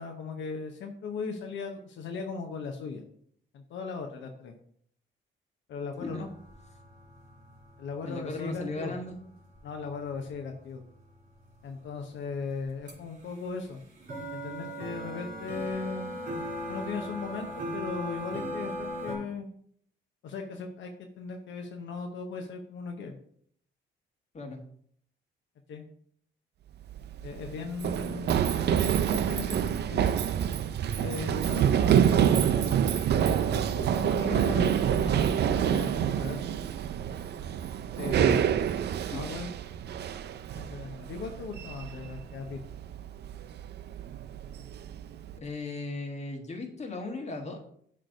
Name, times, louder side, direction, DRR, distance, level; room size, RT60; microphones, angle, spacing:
voice 1, 0.0-3.0 3.5-4.6 5.7-6.3 7.8-8.9 9.6-10.8 11.6-13.8 14.3-16.1 16.7-19.5 20.2-23.2 25.7-25.8 27.2-30.1 30.9-32.7 33.2-36.6 38.0-38.7 39.1-39.5 40.5-42.6, left 4 dB, 70° left, 3 dB, 0.8 m, -38 dB
sound 1, 5.9-11.9 12.3-12.4 12.6-12.9 13.2-19.2, equal, 40° right, 3.2 m, -39 dB
voice 2, 8.0-9.2 24.3-24.6 45.4-47.7, left 2 dB, 35° left, 3 dB, 1.5 m, -37 dB
Run, 26.8-45.4, right 9 dB, 60° right, 0.5 m, -27 dB
7.7 x 3.3 x 5.2 m, 0.63 s
cardioid pair, 90°, 20 cm